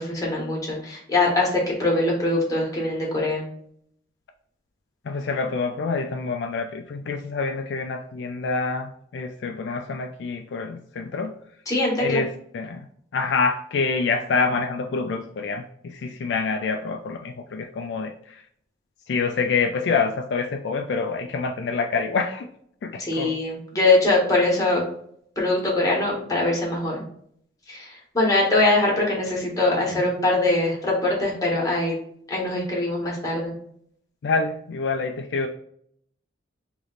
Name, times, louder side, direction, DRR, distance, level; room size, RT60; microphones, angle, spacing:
voice 1, 0.0-3.4 11.7-12.2 23.0-24.8 25.4-27.0 27.7-32.0 32.3-33.5, left 2 dB, 20° left, -4 dB, 1.4 m, -22 dB
voice 2, 5.1-11.3 12.0-12.9 13.1-18.4 19.1-22.5 22.8-23.3 34.2-35.5, left 4 dB, 65° left, 5 dB, 0.3 m, -26 dB
3.2 x 3.0 x 3.9 m, 0.66 s
head